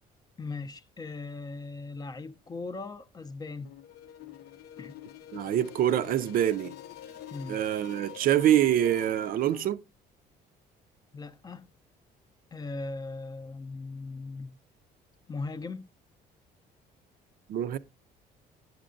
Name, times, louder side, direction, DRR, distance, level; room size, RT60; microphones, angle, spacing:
voice 1, 0.4-3.7 4.8-4.9 7.3-7.6 11.1-11.7 12.5-14.6 15.3-15.8, left 3 dB, 25° left, 0.5 m, -39 dB
sound 1, 3.6-9.7, left 11 dB, 70° left, 0.6 m, -46 dB
voice 2, 5.3-6.8 7.5-9.8 17.5-17.8, right 11 dB, 60° right, 0.4 m, -25 dB
9.2 x 7.6 x 2.5 m
cardioid pair, 110°, 17 cm